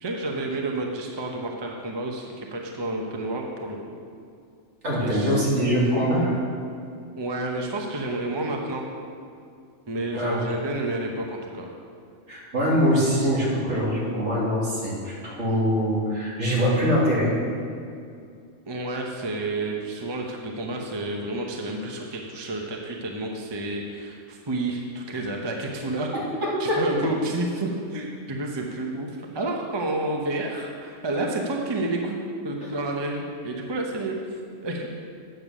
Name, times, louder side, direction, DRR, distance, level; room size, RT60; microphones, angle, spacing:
voice 1, 0.0-4.0 4.9-5.4 7.2-8.9 9.9-11.7 18.7-26.2 26.6-32.2 32.4-34.2 34.6-34.9, right 2 dB, 25° right, 1 dB, 0.8 m, -30 dB
voice 2, 4.8-6.4 10.1-10.4 12.3-17.3 26.1-26.8, equal, 65° right, -6 dB, 2.8 m, -23 dB
9.0 x 7.0 x 6.1 m, 2.4 s
omnidirectional pair, 1.3 m